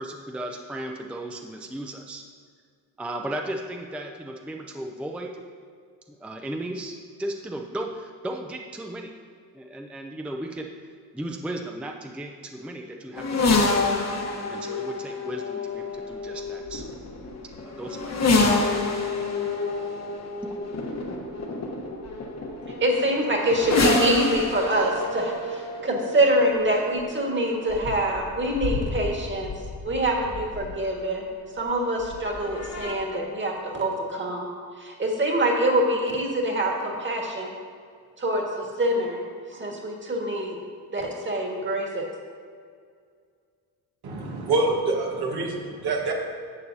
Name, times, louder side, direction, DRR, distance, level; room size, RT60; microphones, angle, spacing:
voice 1, 0.0-2.2 3.0-5.4 6.1-9.1 9.5-10.7 11.1-13.7 14.5-17.0 17.6-18.7 20.4-20.5, right 1 dB, 5° right, 2 dB, 0.5 m, -35 dB
sound 1, 13.2-30.9 32.0-32.9, left 3 dB, 40° left, 1.2 m, -28 dB
voice 2, 22.8-29.5 29.8-31.2 31.6-34.5 34.8-37.5 38.2-39.2 39.5-40.6 40.9-42.1, right 1 dB, 30° right, 0 dB, 1.7 m, -25 dB
voice 3, 44.0-46.1, right 2 dB, 75° right, -1 dB, 1.5 m, -26 dB
11.5 x 7.2 x 2.7 m, 2.1 s
cardioid pair, 90°, 39 cm